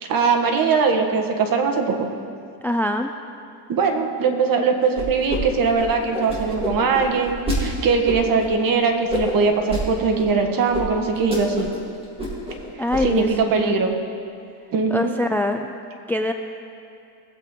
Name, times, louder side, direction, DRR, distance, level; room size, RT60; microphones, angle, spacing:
voice 1, 0.0-2.1 3.7-11.7 13.0-13.9 14.7-15.2, right 5 dB, 50° right, 4 dB, 1.6 m, -21 dB
voice 2, 2.6-3.1 12.8-13.3 13.6-13.8 14.9-15.7 16.1-16.3, left 1 dB, 5° left, 6 dB, 0.3 m, -23 dB
sound 1, 5.0-5.4 5.6-7.6 8.1-8.5 9.1-9.8 10.2-10.3 10.7-10.8 11.1-11.8 12.0-12.6 12.9-13.3, left 1 dB, 10° right, 3.3 m, -27 dB
20.0 x 8.0 x 3.8 m, 2.5 s
cardioid pair, 110°, 44 cm